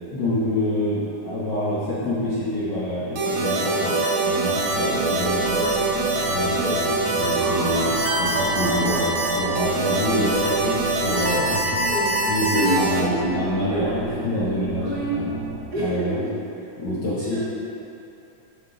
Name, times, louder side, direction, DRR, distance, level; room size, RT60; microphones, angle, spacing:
voice 1, 0.1-3.9 4.2-5.6 6.1-11.8 12.3-15.4 15.8-16.2 16.8-17.4, left 1 dB, 85° left, -10 dB, 0.9 m, -26 dB
sound 1, 3.2-13.0, right 2 dB, 65° right, 1.3 m, -24 dB
voice 2, 3.7-6.1 6.5-6.9 11.7-12.3 12.5-13.4 13.7-14.1 14.8-15.2 15.7-16.6 17.2-17.4, right 1 dB, 45° right, -7 dB, 1.3 m, -30 dB
sound 2, 4.1-15.6, right 3 dB, 80° right, 2.2 m, -34 dB
11.0 x 4.4 x 3.9 m, 2.7 s
omnidirectional pair, 3.7 m